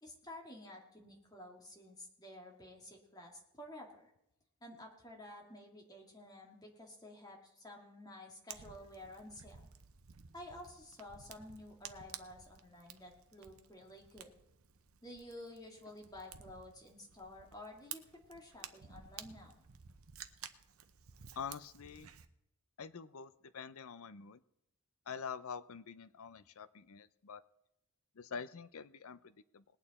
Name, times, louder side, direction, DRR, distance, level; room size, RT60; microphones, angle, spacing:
voice 1, 0.0-4.1 4.6-9.7 10.3-14.3 15.0-19.5, left 1 dB, 15° left, 0 dB, 2.3 m, -52 dB
Fire, 8.5-22.3, right 9 dB, 70° right, 0.8 m, -53 dB
voice 2, 21.4-22.1 22.8-24.4 25.1-27.4 28.1-29.6, left 6 dB, 70° left, 15 dB, 0.6 m, -46 dB
20.0 x 8.8 x 4.2 m, 0.82 s
head